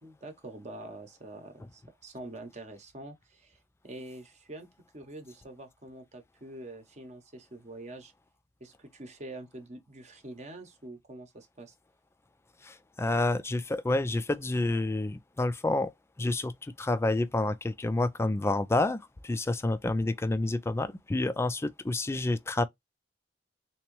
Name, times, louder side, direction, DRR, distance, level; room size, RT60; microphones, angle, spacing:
voice 1, 0.0-4.7 4.9-8.1 8.6-11.7, right 2 dB, 40° right, 0.8 m, -45 dB
voice 2, 12.6-15.9 16.2-22.6, left 2 dB, 15° left, 0.3 m, -29 dB
3.5 x 2.9 x 3.0 m
head